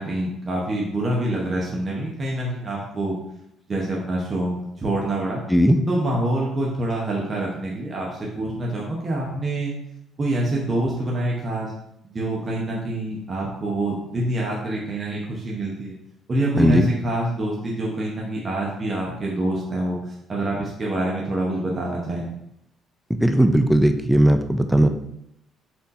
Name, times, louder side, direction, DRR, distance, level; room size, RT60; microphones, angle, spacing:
voice 1, 0.0-3.2 3.7-5.4 5.9-9.7 10.2-11.7 12.0-15.9 16.3-22.3, right 1 dB, 30° right, -3 dB, 0.8 m, -26 dB
voice 2, 5.5-5.8 16.6-16.9 23.1-24.9, equal, ahead, 7 dB, 0.3 m, -17 dB
4.4 x 2.6 x 4.1 m, 0.80 s
cardioid pair, 105°, 0 cm